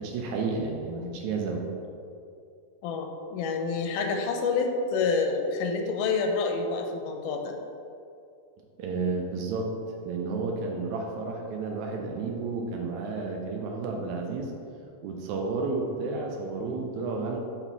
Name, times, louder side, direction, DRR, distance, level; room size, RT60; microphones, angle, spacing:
voice 1, 0.0-1.7 8.8-14.5 15.0-17.4, right 4 dB, 80° right, 1 dB, 1.8 m, -31 dB
voice 2, 2.8-7.5, left 4 dB, 85° left, 4 dB, 2.1 m, -28 dB
5.7 x 4.1 x 4.5 m, 2.4 s
omnidirectional pair, 3.6 m